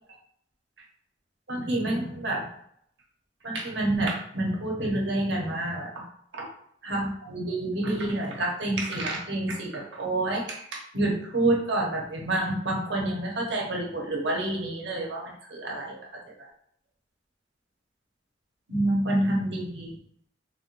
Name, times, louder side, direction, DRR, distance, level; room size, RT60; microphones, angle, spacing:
voice 1, 1.5-2.5 3.4-6.0 6.3-6.5 6.8-16.0 18.7-20.0, right 1 dB, 90° right, -2 dB, 1.1 m, -28 dB
3.7 x 3.0 x 2.5 m, 0.68 s
head